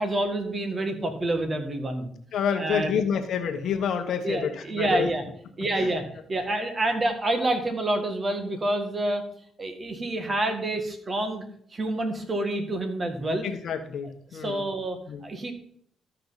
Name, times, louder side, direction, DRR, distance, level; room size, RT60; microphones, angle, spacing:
voice 1, 0.0-2.1 2.6-3.0 4.2-5.2 5.6-9.2 9.6-11.4 11.7-13.5 14.4-15.5, right 1 dB, 30° right, 6 dB, 1.8 m, -28 dB
voice 2, 2.3-5.1 5.7-5.9 13.4-14.6 15.1-15.2, left 7 dB, 70° left, 6 dB, 1.3 m, -28 dB
13.0 x 5.7 x 4.1 m, 0.64 s
cardioid pair, 90°, 0 cm